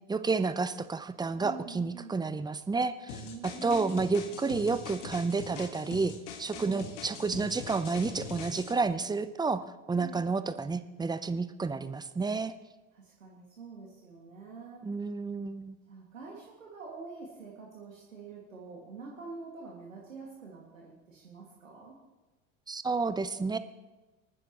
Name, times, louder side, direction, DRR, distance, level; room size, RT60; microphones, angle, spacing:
voice 1, 0.1-3.2 3.6-6.1 6.4-12.5 14.8-15.8 22.7-23.6, right 4 dB, 10° right, 12 dB, 0.7 m, -30 dB
voice 2, 1.4-2.2 3.2-4.0 6.5-6.9 10.0-10.3 12.9-14.9 15.9-22.0, right 4 dB, 90° right, -3 dB, 2.2 m, -46 dB
sound 1, 3.1-8.7, left 6 dB, 65° left, 1.7 m, -43 dB
26.0 x 9.7 x 3.0 m, 1.2 s
hypercardioid pair, 75°, 38 cm